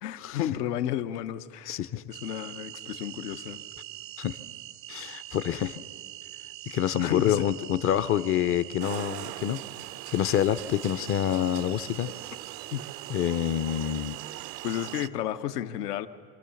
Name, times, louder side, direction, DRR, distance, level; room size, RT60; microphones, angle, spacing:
voice 1, 0.0-1.8 2.1-3.6 7.0-7.4 12.7-12.8 14.6-16.1, left 11 dB, 85° left, 10 dB, 1.0 m, -32 dB
voice 2, 1.7-2.0 4.2-4.4 4.9-5.8 6.7-9.6 10.1-12.1 13.1-14.2, left 10 dB, 30° left, 15 dB, 0.5 m, -27 dB
sound 1, 2.1-15.1, right 15 dB, 30° right, 0.4 m, -43 dB
sound 2, 8.8-15.1, right 14 dB, 90° right, 0.7 m, -42 dB
26.0 x 14.0 x 7.0 m, 2.2 s
supercardioid pair, 115°, 46 cm